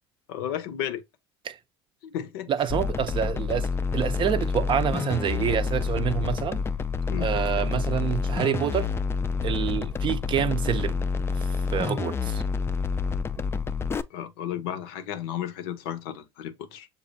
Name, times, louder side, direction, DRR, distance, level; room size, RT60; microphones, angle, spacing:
voice 1, 0.3-1.0 2.0-2.5 7.1-7.3 13.9-16.9, left 10 dB, 70° left, 0.6 m, -33 dB
voice 2, 2.5-6.6 7.2-8.9 9.4-11.0 11.4-12.4, right 9 dB, 40° right, 0.5 m, -27 dB
sound 1, 2.7-14.0, left 5 dB, 20° left, 0.3 m, -28 dB
6.5 x 2.4 x 2.6 m
hypercardioid pair, 70°, 13 cm